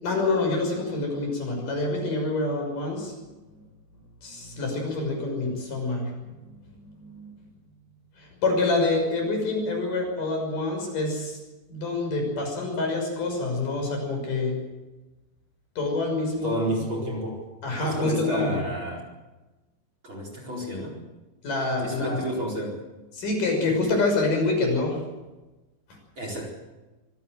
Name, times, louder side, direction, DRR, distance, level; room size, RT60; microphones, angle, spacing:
voice 1, 0.0-3.1 4.2-6.1 7.1-7.3 8.4-11.4 11.7-14.6 15.8-16.5 17.6-18.5 21.4-22.2 23.2-25.0, left 2 dB, 60° left, 2 dB, 7.7 m, -26 dB
voice 2, 16.4-17.4 17.8-19.1 20.0-21.0 21.8-22.7 26.2-26.5, right 1 dB, 30° right, 0 dB, 4.9 m, -31 dB
25.0 x 17.0 x 7.9 m, 1.1 s
omnidirectional pair, 4.3 m